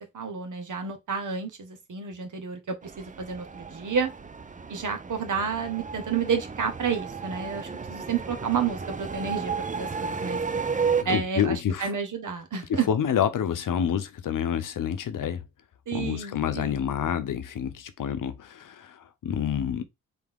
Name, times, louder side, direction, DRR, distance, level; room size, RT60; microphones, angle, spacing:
voice 1, 0.0-4.1 4.7-10.4 11.0-12.9 15.9-16.9, right 6 dB, 65° right, 1.5 m, -30 dB
sound 1, 2.8-11.0, right 5 dB, 25° right, 0.6 m, -33 dB
voice 2, 11.0-11.9 12.7-15.4 15.9-19.8, left 8 dB, 70° left, 0.8 m, -28 dB
4.1 x 3.6 x 3.6 m
cardioid pair, 50°, 33 cm